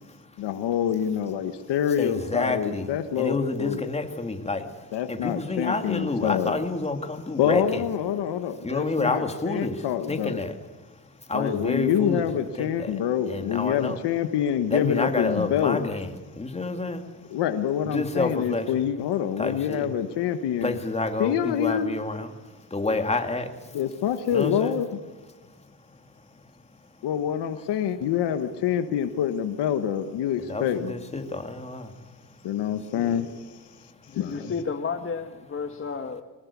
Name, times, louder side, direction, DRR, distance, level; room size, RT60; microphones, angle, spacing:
voice 1, 0.4-3.8 4.9-6.6 7.4-10.4 11.3-15.8 17.3-20.8 21.2-21.9 23.7-24.9 27.0-30.9 32.4-33.3 34.1-34.5, left 9 dB, 90° left, 9 dB, 1.4 m, -26 dB
voice 2, 2.0-7.8 8.6-12.3 12.6-13.0 13.3-14.0 14.7-17.3 17.8-18.9 19.4-19.9 20.6-23.8 24.3-24.8 25.6-26.0 26.3-26.4 30.4-32.4 32.8-33.2 33.8-34.5, left 3 dB, 15° left, 6 dB, 2.4 m, -30 dB
voice 3, 34.1-36.2, left 5 dB, 30° left, 6 dB, 1.4 m, -32 dB
23.0 x 19.5 x 8.4 m, 1.3 s
cardioid pair, 130°, 40 cm